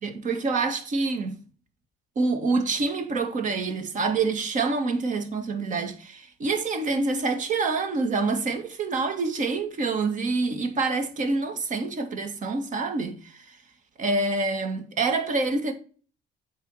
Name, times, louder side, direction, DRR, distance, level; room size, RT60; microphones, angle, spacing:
voice 1, 0.0-1.4 2.2-13.6 14.0-15.7, right 3 dB, 50° right, 2.1 m, -26 dB
8.0 x 4.8 x 5.7 m
cardioid pair, 110°, 17 cm